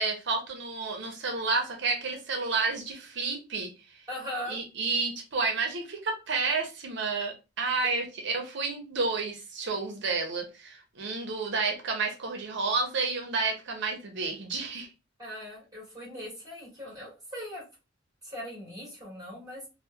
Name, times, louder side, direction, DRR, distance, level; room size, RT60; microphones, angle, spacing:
voice 1, 0.0-4.0 4.5-14.9, right 4 dB, 65° right, 0.6 m, -30 dB
voice 2, 4.1-4.6 15.2-17.6 18.2-19.6, equal, 20° right, 1.5 m, -39 dB
2.9 x 2.1 x 2.2 m
head